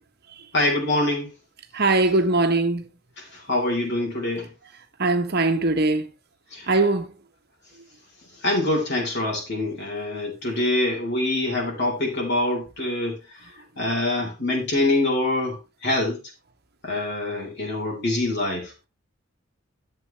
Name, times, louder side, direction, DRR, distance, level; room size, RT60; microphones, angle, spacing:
voice 1, 0.5-1.3 3.2-4.5 6.5-6.7 8.4-13.2 13.8-16.2 16.8-18.7, left 2 dB, 55° left, 3.9 m, -25 dB
voice 2, 1.7-2.8 5.0-6.1 6.7-7.1, right 2 dB, 50° right, 1.2 m, -21 dB
12.0 x 7.7 x 3.3 m
head